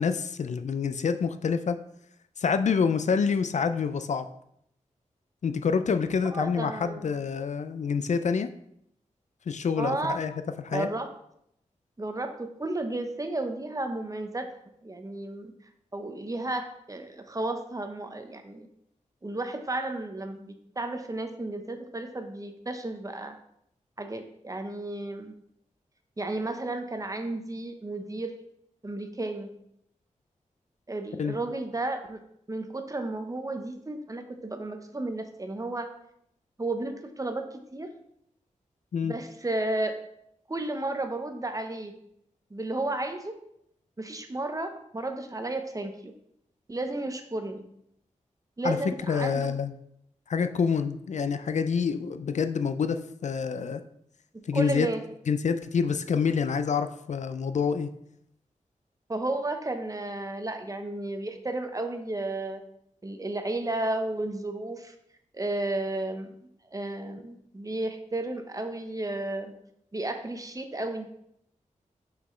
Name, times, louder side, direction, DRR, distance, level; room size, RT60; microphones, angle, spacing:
voice 1, 0.0-1.8 2.4-4.3 5.4-8.5 9.5-10.3 10.6-10.9 31.2-31.4 38.9-39.1 48.6-48.8 49.1-49.7 50.3-53.8 54.5-54.9 55.3-57.9, left 6 dB, 65° left, 10 dB, 0.4 m, -27 dB
voice 2, 6.2-7.1 9.8-10.2 10.7-11.1 12.0-14.5 14.8-15.5 15.9-18.7 19.2-23.3 24.0-25.3 26.2-28.3 28.8-29.5 30.9-32.2 32.5-35.9 36.6-37.4 37.7-37.9 39.0-39.9 40.5-41.9 42.5-43.3 44.0-46.1 46.7-47.6 48.6-49.5 54.5-55.0 59.1-62.6 63.0-64.9 65.3-66.3 66.7-69.5 69.9-71.1, right 2 dB, 25° right, 6 dB, 0.9 m, -33 dB
5.9 x 5.8 x 3.2 m, 0.74 s
cardioid pair, 60°, 13 cm